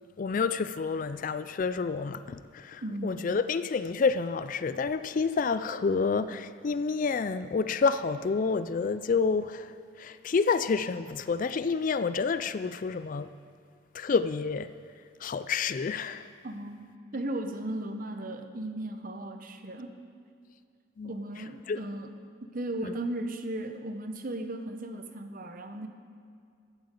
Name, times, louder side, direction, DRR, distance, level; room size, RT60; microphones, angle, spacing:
voice 1, 0.2-13.3 13.9-14.7 15.2-16.3 21.0-21.8 22.8-22.9, left 5 dB, 40° left, 13 dB, 0.3 m, -29 dB
voice 2, 2.8-3.2 16.4-16.8 17.1-19.9 21.0-22.1 22.4-25.9, right 1 dB, 40° right, 7 dB, 0.9 m, -36 dB
14.0 x 7.7 x 8.2 m, 2.3 s
head